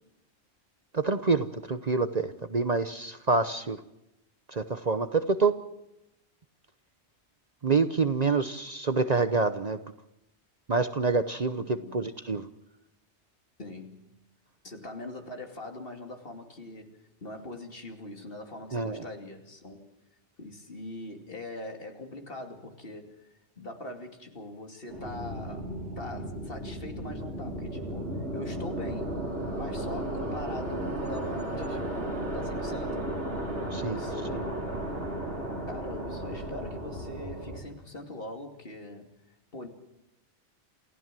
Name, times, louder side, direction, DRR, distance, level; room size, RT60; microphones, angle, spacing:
voice 1, 0.9-3.8 4.5-5.6 7.6-9.8 10.7-11.6 11.9-12.5 18.7-19.0 33.7-34.0 34.3-34.4, right 4 dB, 40° right, 10 dB, 0.9 m, -27 dB
voice 2, 11.6-12.1 13.6-14.0 14.6-19.9 20.4-29.2 29.5-33.1 33.9-34.7 35.7-39.7, left 2 dB, 55° left, 4 dB, 2.8 m, -42 dB
sound 1, 24.9-37.6, right 1 dB, 80° right, 5.7 m, -34 dB
28.5 x 15.5 x 7.6 m, 0.88 s
omnidirectional pair, 1.2 m